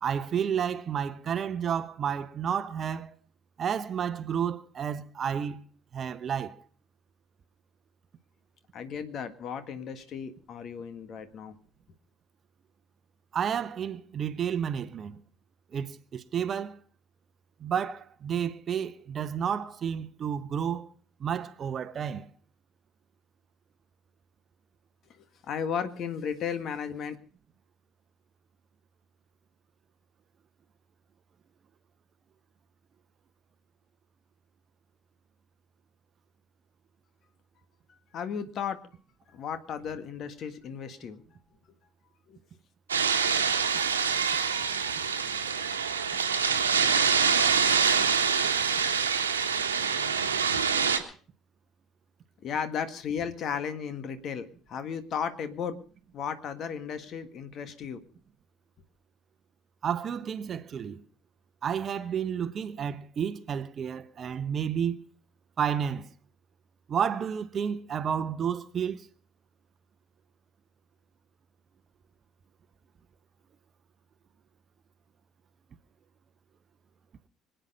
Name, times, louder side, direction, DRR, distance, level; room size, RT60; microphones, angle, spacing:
voice 1, 0.0-3.1 3.6-5.6 5.9-6.6 13.3-15.2 15.7-16.8 17.6-20.9 21.2-22.3 59.8-61.0 61.6-65.0 65.6-66.1 66.9-69.1, right 8 dB, 40° right, 0.9 m, -31 dB
voice 2, 8.7-11.5 25.2-27.2 38.1-38.8 39.3-41.2 42.3-42.4 52.4-55.8 56.1-58.0, left 7 dB, 45° left, 1.7 m, -35 dB
sound 1, 42.9-51.0, right 6 dB, 80° right, 1.3 m, -25 dB
25.0 x 9.1 x 5.4 m
figure-of-eight pair, 55°, 0 cm